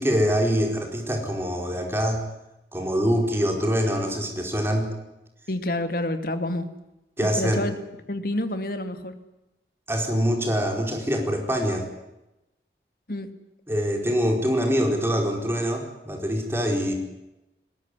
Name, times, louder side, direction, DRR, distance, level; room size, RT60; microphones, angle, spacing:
voice 1, 0.0-2.2 2.7-4.9 7.2-7.6 9.9-11.9 13.7-16.9, equal, 15° right, 2 dB, 4.7 m, -24 dB
voice 2, 5.5-6.7 7.2-7.7 8.1-9.1 13.1-13.3, left 1 dB, 55° left, 9 dB, 2.5 m, -28 dB
22.0 x 20.5 x 9.9 m, 0.94 s
head